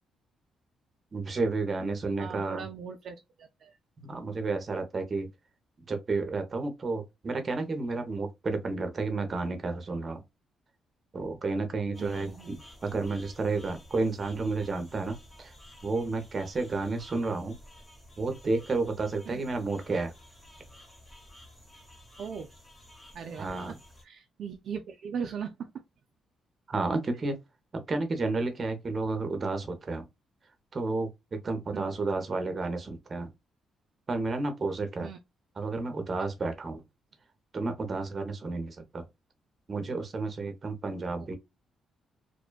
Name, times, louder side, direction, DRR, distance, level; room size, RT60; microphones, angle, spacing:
voice 1, 1.1-2.7 4.0-5.3 5.9-10.2 11.1-15.5 15.8-17.6 18.2-20.1 23.4-23.8 26.7-27.4 27.9-30.1 30.7-33.3 34.1-35.1 35.6-36.8 37.5-39.0 39.7-41.4, right 3 dB, 35° right, 0.7 m, -31 dB
voice 2, 2.2-3.8 12.0-12.6 19.3-19.5 22.2-22.5 23.1-23.8 24.0-25.8 31.7-32.0 35.0-35.2 41.2-41.3, right 7 dB, 65° right, 0.3 m, -39 dB
sound 1, 11.9-24.0, left 1 dB, 15° left, 0.8 m, -52 dB
2.5 x 2.2 x 2.2 m
cardioid pair, 90°, 0 cm